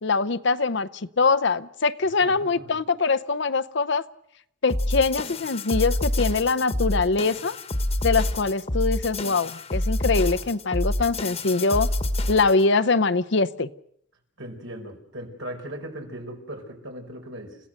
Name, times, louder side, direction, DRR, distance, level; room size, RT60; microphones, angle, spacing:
voice 1, 0.0-4.0 4.6-7.6 8.0-11.9 12.3-13.7, left 4 dB, 65° left, 14 dB, 0.7 m, -23 dB
voice 2, 2.2-2.8 14.4-17.6, right 1 dB, 80° right, 3 dB, 4.8 m, -38 dB
sound 1, 4.7-12.6, left 1 dB, 30° left, 1.3 m, -27 dB
29.5 x 16.0 x 6.5 m, 0.74 s
head